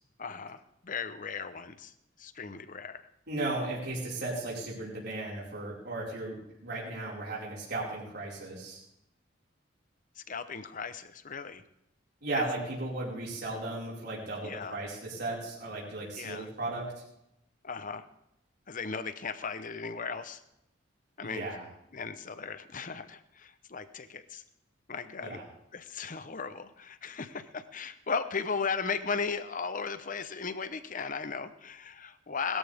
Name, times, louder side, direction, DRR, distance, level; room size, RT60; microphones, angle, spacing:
voice 1, 0.2-1.9 2.2-3.1 10.2-11.6 12.3-12.4 14.4-14.8 16.1-16.5 17.6-18.1 18.7-20.4 21.2-21.5 21.9-24.4 24.9-25.4 25.7-32.6, left 5 dB, 45° left, 12 dB, 0.9 m, -36 dB
voice 2, 3.3-8.8 12.2-16.9 21.2-21.6 25.2-25.4, right 2 dB, 60° right, -6 dB, 5.3 m, -36 dB
20.5 x 13.5 x 3.6 m, 0.80 s
head